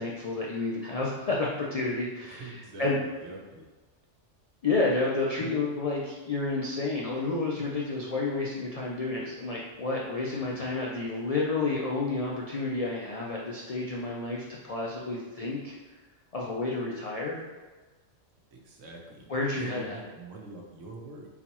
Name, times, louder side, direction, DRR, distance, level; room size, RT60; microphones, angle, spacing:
voice 1, 0.0-3.0 4.6-15.7 16.3-17.4 19.3-20.0, left 3 dB, 65° left, -3 dB, 0.3 m, -30 dB
voice 2, 2.3-3.6 10.3-10.7 18.5-21.3, right 2 dB, 75° right, -1 dB, 1.1 m, -44 dB
4.1 x 3.9 x 3.0 m, 1.3 s
omnidirectional pair, 1.3 m